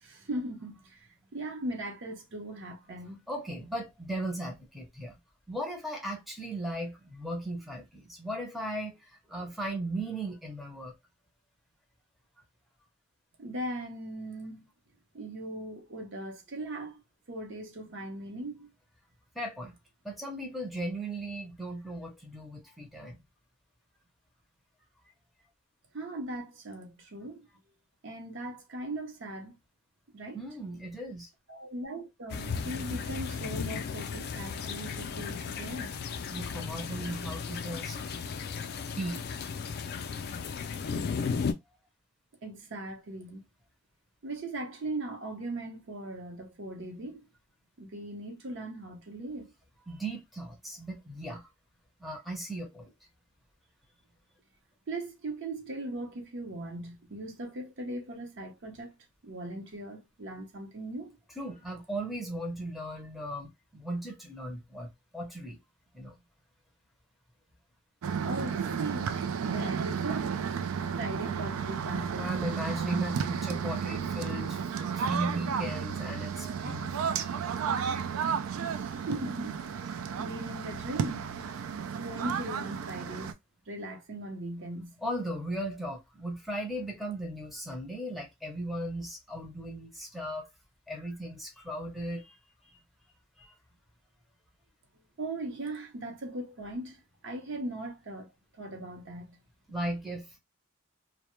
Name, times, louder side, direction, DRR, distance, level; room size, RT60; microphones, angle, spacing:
voice 1, 0.0-3.2 13.4-14.7 15.1-17.0 17.3-18.7 25.9-27.5 28.0-29.6 30.1-30.4 31.5-35.9 42.4-43.4 44.2-47.3 47.8-49.5 54.9-58.9 59.2-61.2 68.2-70.6 71.0-72.2 78.7-79.6 79.9-81.5 81.9-83.3 83.7-84.9 95.2-98.3 98.5-99.4, right 1 dB, 60° right, 0.7 m, -39 dB
voice 2, 3.3-5.2 5.5-10.9 19.3-19.8 20.0-23.2 30.3-31.3 36.3-38.0 38.7-39.2 49.9-51.5 52.0-52.9 61.4-65.6 65.9-66.2 72.1-74.6 75.0-77.3 85.0-90.5 90.9-92.4 93.4-93.5 99.7-100.4, right 1 dB, ahead, 0.5 m, -37 dB
sound 1, 32.3-41.5, left 5 dB, 50° left, 0.3 m, -35 dB
sound 2, 68.0-83.3, right 7 dB, 80° right, 0.3 m, -33 dB
2.1 x 2.1 x 3.0 m
head